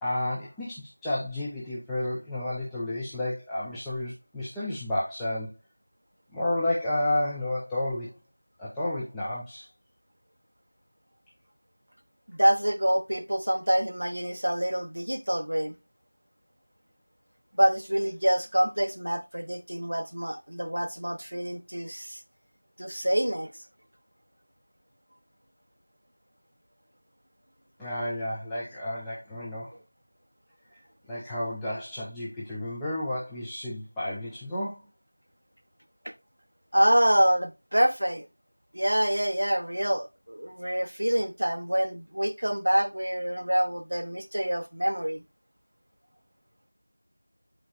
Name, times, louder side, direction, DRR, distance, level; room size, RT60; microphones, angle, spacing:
voice 1, 0.0-5.5 6.3-8.1 8.6-9.7 27.8-29.7 30.7-30.8 31.1-34.8, left 1 dB, ahead, 0.3 m, -31 dB
voice 2, 12.3-15.8 17.5-22.2 22.8-23.5 36.0-36.1 36.7-38.3 38.7-45.2, equal, 40° right, 0.9 m, -26 dB
11.0 x 3.7 x 2.4 m
figure-of-eight pair, 180°, 0 cm